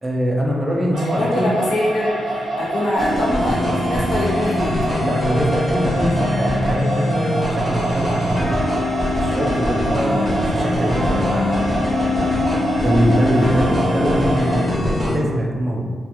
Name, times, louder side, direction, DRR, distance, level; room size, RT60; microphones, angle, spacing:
voice 1, 0.0-1.5 3.7-4.0 5.0-8.4 9.1-11.5 12.8-15.9, equal, 20° right, -1 dB, 0.4 m, -22 dB
sound 1, 0.9-14.7, right 1 dB, 85° right, 0.4 m, -26 dB
voice 2, 1.2-4.8 13.4-13.6, left 1 dB, 75° left, -5 dB, 0.5 m, -24 dB
sound 2, 3.0-15.2, left 1 dB, 5° left, 0.8 m, -22 dB
2.3 x 2.3 x 2.8 m, 1.5 s
wide cardioid pair, 140°, 0 cm